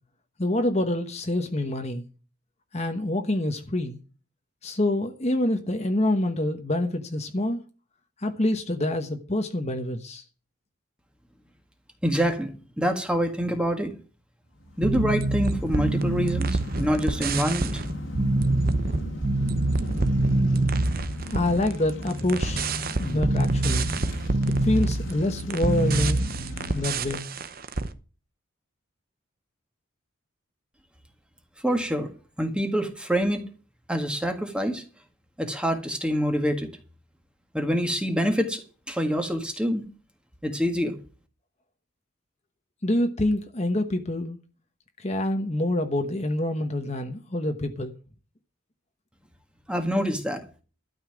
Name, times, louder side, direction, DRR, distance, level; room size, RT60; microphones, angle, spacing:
voice 1, 0.4-2.1 2.7-4.0 4.6-7.6 8.2-10.2 21.3-22.7 23.0-23.9 24.5-26.3 26.7-27.3 42.8-44.4 45.0-47.9, left 1 dB, 30° left, 1.1 m, -26 dB
voice 2, 12.0-13.9 14.8-17.8 31.6-32.1 32.4-33.4 33.9-34.8 35.4-36.7 37.5-39.8 40.4-41.0 49.7-50.4, equal, 5° right, 1.7 m, -26 dB
sound 1, 14.6-26.8, left 1 dB, 70° left, 2.1 m, -37 dB
sound 2, 14.8-27.9, right 2 dB, 45° right, 0.8 m, -26 dB
12.5 x 5.7 x 8.9 m
head